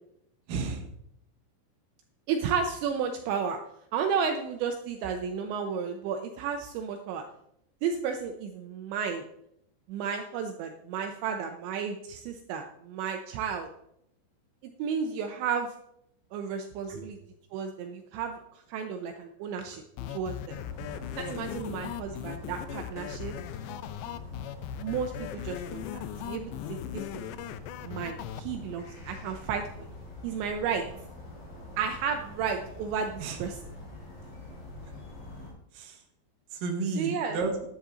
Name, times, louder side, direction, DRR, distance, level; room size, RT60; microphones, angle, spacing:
voice 1, 0.5-0.9 16.9-17.0 20.0-20.1 20.8-21.2 21.5-21.6 33.2-33.4 34.8-34.9 35.7-36.0 36.5-37.5, right 4 dB, 60° right, 2 dB, 2.6 m, -33 dB
voice 2, 2.3-3.6 3.9-7.2 7.8-9.2 9.9-13.7 14.8-15.7 16.3-17.2 17.5-18.4 18.7-19.8 20.1-20.6 21.2-23.4 24.8-27.3 27.8-29.9 30.2-30.8 31.8-33.5 37.0-37.4, right 6 dB, 80° right, 4 dB, 2.9 m, -32 dB
sound 1, 20.0-28.4, left 12 dB, 85° left, 2.6 m, -39 dB
sound 2, 20.4-35.5, left 2 dB, 70° left, 7.1 m, -45 dB
11.0 x 10.5 x 3.8 m, 0.76 s
omnidirectional pair, 5.5 m